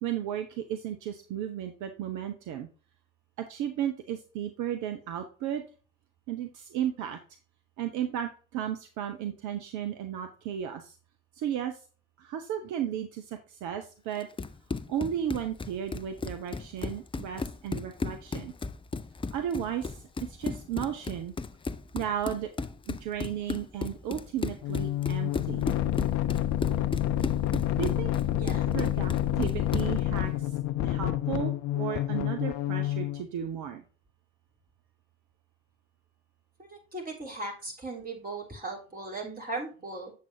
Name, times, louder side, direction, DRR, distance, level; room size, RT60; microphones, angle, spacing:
voice 1, 0.0-2.7 3.4-5.6 6.3-7.2 7.8-11.0 11.3-11.8 12.2-14.3 14.9-18.5 19.3-21.3 21.9-22.5 22.9-25.7 27.8-28.1 28.7-30.6 30.8-33.8, right 10 dB, 65° right, 6 dB, 0.8 m, -34 dB
Run, 14.2-30.0, left 4 dB, 15° left, 0.5 m, -35 dB
sound 1, 24.6-33.2, left 12 dB, 60° left, 0.6 m, -28 dB
voice 2, 36.6-40.1, right 2 dB, 25° right, -3 dB, 3.4 m, -38 dB
7.5 x 7.5 x 2.7 m, 0.38 s
hypercardioid pair, 50°, 33 cm